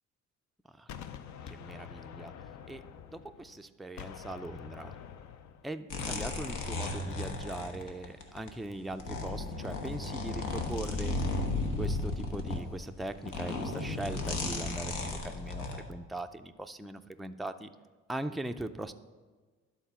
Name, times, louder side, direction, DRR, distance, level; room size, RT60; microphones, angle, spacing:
Gunshot gunfire, 0.9-3.6 4.0-7.5, left 8 dB, 70° left, 0.6 m, -47 dB
voice 1, 1.5-2.3 2.7-5.0 5.6-11.2 11.8-17.7 18.1-18.9, right 1 dB, ahead, 7 dB, 0.3 m, -40 dB
sound 1, 5.9-8.5 8.9-15.8, left 2 dB, 85° left, 1.1 m, -35 dB
11.5 x 4.0 x 5.6 m, 1.4 s
cardioid pair, 90°, 30 cm